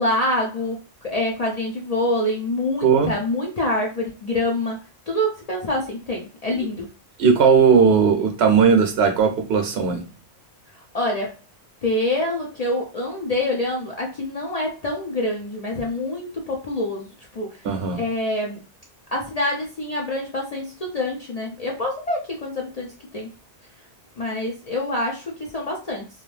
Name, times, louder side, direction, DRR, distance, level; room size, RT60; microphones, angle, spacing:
voice 1, 0.0-4.8 5.1-6.9 10.8-11.4 11.8-17.6 18.0-18.6 19.1-23.3 24.2-26.1, left 1 dB, 50° left, 0.5 m, -26 dB
voice 2, 2.8-3.1 7.2-10.0 17.6-18.0, right 6 dB, 70° right, 0.8 m, -17 dB
2.5 x 2.3 x 3.1 m
omnidirectional pair, 1.2 m